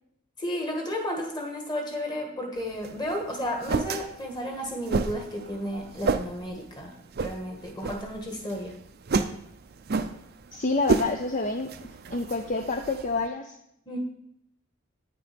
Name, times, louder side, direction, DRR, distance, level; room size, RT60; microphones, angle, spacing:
voice 1, 0.4-6.9 7.2-8.7 13.9-14.0, equal, 20° left, 2 dB, 1.6 m, -33 dB
sound 1, 2.6-13.3, right 4 dB, 50° right, 0.5 m, -32 dB
voice 2, 10.5-11.7 12.1-13.6, left 3 dB, 40° left, 5 dB, 0.5 m, -28 dB
8.8 x 6.1 x 5.2 m, 0.75 s
head